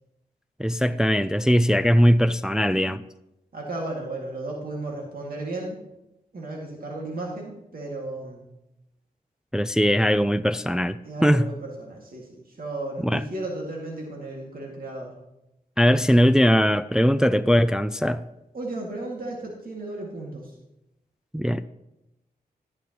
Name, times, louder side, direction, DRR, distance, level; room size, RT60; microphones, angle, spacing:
voice 1, 0.6-3.0 9.5-11.0 11.2-11.5 13.0-13.2 15.8-18.2 21.3-21.7, equal, 5° right, 0.3 m, -20 dB
voice 2, 3.5-5.8 6.3-8.5 11.0-15.1 18.5-20.5, right 2 dB, 65° right, 2.2 m, -34 dB
12.0 x 10.5 x 3.0 m
wide cardioid pair, 70°, 16 cm